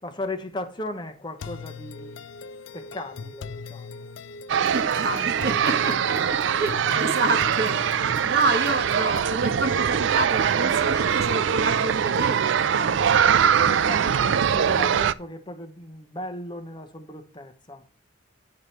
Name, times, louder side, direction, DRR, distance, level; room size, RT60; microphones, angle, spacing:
voice 1, 0.0-2.2 2.7-4.1 13.6-17.8, left 1 dB, 25° left, 0.9 m, -36 dB
sound 1, 1.4-9.4, left 6 dB, 85° left, 0.4 m, -41 dB
sound 2, 1.9-8.1, right 1 dB, 70° left, 1.2 m, -46 dB
sound 3, 4.5-15.1, right 8 dB, 75° right, 0.4 m, -22 dB
voice 2, 4.7-13.1, right 2 dB, 55° right, 1.3 m, -28 dB
9.6 x 4.9 x 5.7 m
head